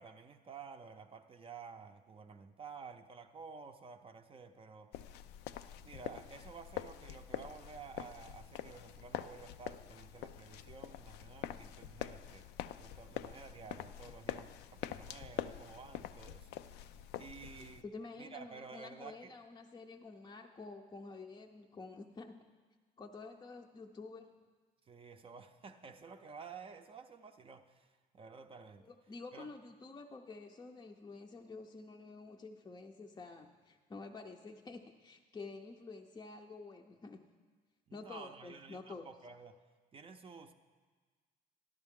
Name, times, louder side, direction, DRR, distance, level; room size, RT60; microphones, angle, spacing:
voice 1, 0.0-5.0 5.9-12.5 12.8-16.8 17.2-17.8 18.2-19.4 24.9-28.9 29.3-29.5 37.9-39.6 39.9-40.5, right 5 dB, 35° right, 7 dB, 0.5 m, -52 dB
sound 1, 4.9-17.8, left 11 dB, 80° left, 0.4 m, -45 dB
voice 2, 17.6-22.4 23.0-24.5 28.8-37.3 37.9-39.1, left 3 dB, 25° left, 2 dB, 0.5 m, -49 dB
13.0 x 11.0 x 3.7 m, 1.4 s
cardioid pair, 110°, 17 cm